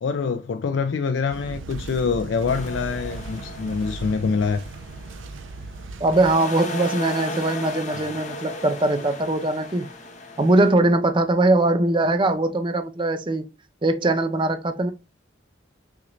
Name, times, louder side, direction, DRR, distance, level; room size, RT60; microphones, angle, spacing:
voice 1, 0.0-4.6, left 5 dB, 70° left, 0.4 m, -25 dB
sound 1, 1.3-6.4, right 3 dB, 85° right, 0.5 m, -37 dB
sound 2, 2.5-5.8 6.1-10.7, left 1 dB, 40° left, 0.8 m, -36 dB
voice 2, 6.0-9.9 10.4-13.5 13.8-14.9, right 2 dB, 25° right, 0.5 m, -21 dB
5.8 x 2.6 x 3.0 m
head